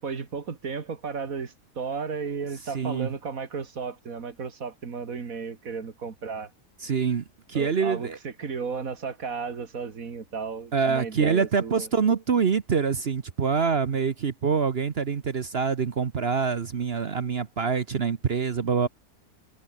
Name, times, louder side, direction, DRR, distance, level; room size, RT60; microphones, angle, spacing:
voice 1, 0.0-6.5 7.5-11.9, right 5 dB, 65° right, 2.4 m, -34 dB
voice 2, 2.7-3.1 6.8-8.2 10.7-18.9, right 6 dB, 45° right, 1.1 m, -25 dB
omnidirectional pair, 1.6 m